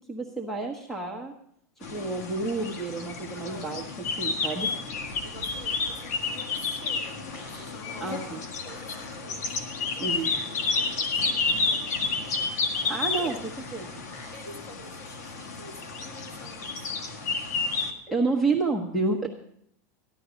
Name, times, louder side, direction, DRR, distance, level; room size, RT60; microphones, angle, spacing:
voice 1, 0.1-1.3 1.8-3.8 4.2-4.7 8.0-8.4 10.0-10.4 12.9-13.4 13.7-13.9 16.9-17.2 18.1-19.3, right 3 dB, 5° left, 3 dB, 1.2 m, -29 dB
sound 1, 1.8-17.9, left 4 dB, 85° left, 1.8 m, -31 dB
voice 2, 3.3-3.7 4.6-4.8 5.2-8.4 8.6-12.4 13.1-13.3 14.3-17.0, left 1 dB, 40° left, 1 dB, 3.1 m, -48 dB
sound 2, 4.9-14.5, left 2 dB, 65° left, 3.2 m, -47 dB
14.5 x 11.0 x 5.2 m, 0.72 s
supercardioid pair, 140°, 9 cm